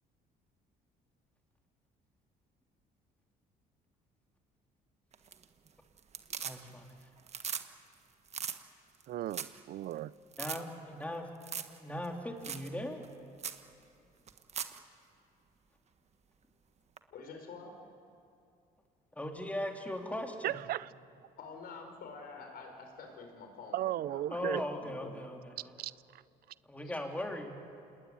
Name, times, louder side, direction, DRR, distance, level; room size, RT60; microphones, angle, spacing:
sound 1, 5.1-5.7 6.0-6.9 7.2-7.7 7.9-8.0 8.3-8.6 9.0-9.1 9.3-9.6 9.9-10.0 10.3-10.6 11.4-11.8 12.0-12.1 12.4-12.7 13.0-13.1 13.4-13.6 14.3-14.8 17.0-17.1, right 7 dB, 40° right, 1.5 m, -39 dB
voice 1, 6.4-6.9 10.4-11.3 11.8-13.0 19.1-20.6 24.3-25.7 26.7-27.6, left 1 dB, 10° left, 3.3 m, -39 dB
voice 2, 9.1-10.1 20.4-20.9 23.7-24.6 25.8-25.9, right 13 dB, 65° right, 0.5 m, -35 dB
voice 3, 17.1-17.7 21.4-25.1, left 4 dB, 65° left, 5.3 m, -48 dB
27.5 x 20.0 x 9.5 m
cardioid pair, 110°, 17 cm